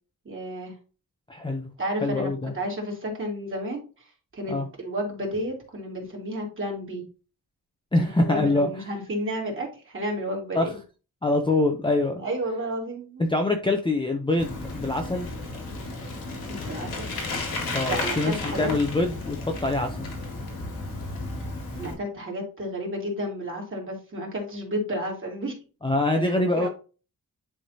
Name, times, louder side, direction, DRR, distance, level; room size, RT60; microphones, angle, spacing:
voice 1, 0.2-0.8 1.8-7.0 8.0-10.7 12.2-13.2 16.5-17.1 17.8-18.7 21.8-25.6 26.2-26.7, equal, 35° right, -1 dB, 2.7 m, -32 dB
voice 2, 1.3-1.7 2.0-2.5 4.5-4.7 7.9-8.7 10.5-10.6 11.2-12.2 13.3-15.3 17.7-20.1 25.8-26.7, left 2 dB, 15° left, 3 dB, 0.7 m, -24 dB
Bicycle, 14.4-21.9, left 2 dB, 80° left, 2.2 m, -33 dB
10.5 x 3.6 x 2.8 m, 0.34 s
wide cardioid pair, 150°, 36 cm